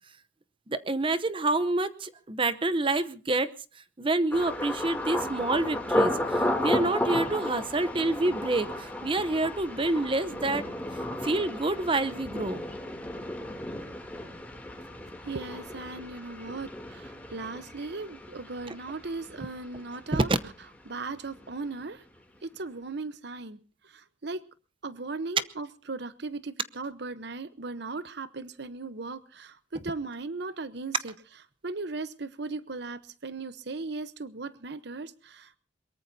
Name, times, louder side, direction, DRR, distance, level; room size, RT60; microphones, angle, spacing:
voice 1, 0.7-10.6 11.2-12.6 18.7-18.8 20.1-20.4, right 2 dB, 25° right, 13 dB, 0.8 m, -28 dB
Thunder, 4.3-20.1 20.3-21.0 21.4-21.6, left 1 dB, 10° left, 2.9 m, -33 dB
voice 2, 15.2-20.3 20.9-22.0 22.4-23.6 23.8-24.4 24.8-31.1 31.6-35.6, right 3 dB, 60° right, 13 dB, 0.9 m, -37 dB
23.0 x 22.0 x 2.8 m, 0.37 s
head